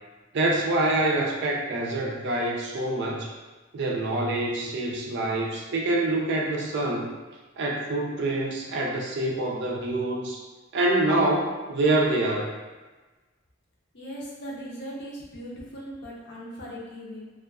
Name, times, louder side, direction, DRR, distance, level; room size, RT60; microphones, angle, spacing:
voice 1, 0.3-3.3 3.7-7.1 7.6-10.4 10.7-12.5, right 2 dB, 60° right, -1 dB, 0.4 m, -26 dB
voice 2, 13.9-17.2, equal, 60° left, -4 dB, 0.6 m, -39 dB
2.4 x 2.3 x 2.3 m, 1.3 s
head